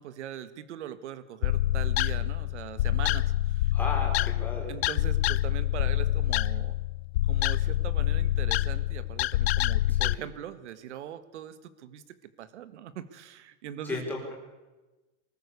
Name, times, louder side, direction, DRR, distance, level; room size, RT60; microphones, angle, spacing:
voice 1, 0.0-3.7 4.7-6.7 7.3-14.1, right 10 dB, 75° right, 14 dB, 1.7 m, -41 dB
sound 1, 1.4-10.1, left 15 dB, 60° left, 0.6 m, -26 dB
voice 2, 3.7-4.7 9.9-10.3 13.8-14.3, left 2 dB, 5° left, -2 dB, 4.5 m, -35 dB
24.0 x 14.0 x 8.2 m, 1.2 s
supercardioid pair, 165°, 36 cm